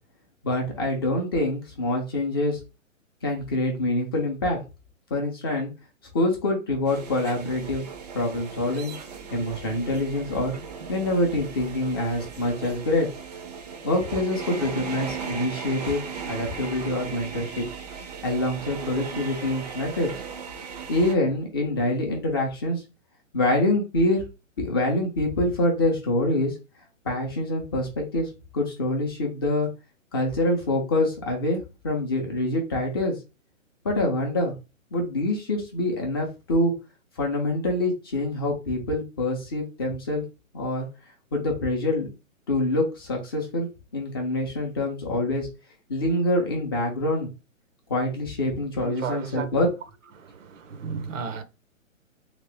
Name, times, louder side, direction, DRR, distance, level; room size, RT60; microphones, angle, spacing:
voice 1, 0.4-2.6 3.2-4.6 5.1-5.7 6.1-7.9 8.1-8.9 9.3-10.5 10.9-13.1 13.8-17.7 18.2-20.1 20.9-22.8 23.3-24.2 24.6-26.5 27.0-29.7 30.1-33.1 33.8-34.5 34.9-36.7 37.2-40.2 40.5-40.9 41.3-42.1 42.5-45.5 45.9-47.3 47.9-49.7, left 1 dB, 20° left, 0.5 m, -25 dB
sound 1, 6.9-21.2, right 6 dB, 30° right, 0.5 m, -37 dB
voice 2, 48.8-49.5 50.2-51.4, right 6 dB, 65° right, 0.7 m, -34 dB
2.9 x 2.9 x 3.3 m
hypercardioid pair, 150°, 41 cm